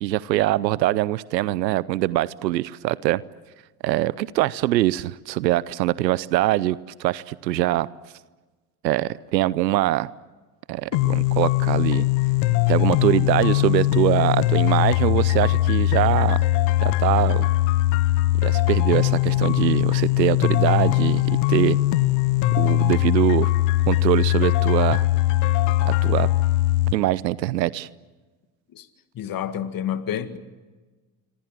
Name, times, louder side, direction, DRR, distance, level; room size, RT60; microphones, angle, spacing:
voice 1, 0.0-3.2 3.8-7.9 8.8-10.1 10.7-12.1 12.7-16.5 16.8-17.5 18.4-21.8 22.6-23.5 23.9-25.1 25.8-26.3 26.9-27.9, right 16 dB, 85° right, 0.7 m, -23 dB
sound 1, 10.9-26.9, left 16 dB, 65° left, 1.2 m, -20 dB
voice 2, 29.1-30.4, left 9 dB, 40° left, 2.0 m, -29 dB
26.5 x 25.5 x 7.6 m
hypercardioid pair, 80°, 50 cm